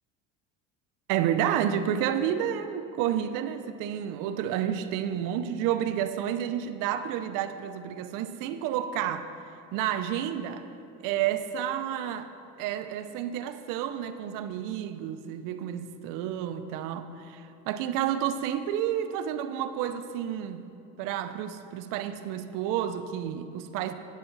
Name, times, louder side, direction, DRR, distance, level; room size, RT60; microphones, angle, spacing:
voice 1, 1.1-9.3 9.7-10.7 11.0-12.3 12.6-20.7 21.0-23.9, right 10 dB, 70° right, 10 dB, 0.6 m, -30 dB
9.5 x 8.9 x 3.9 m, 2.6 s
supercardioid pair, 110°, 33 cm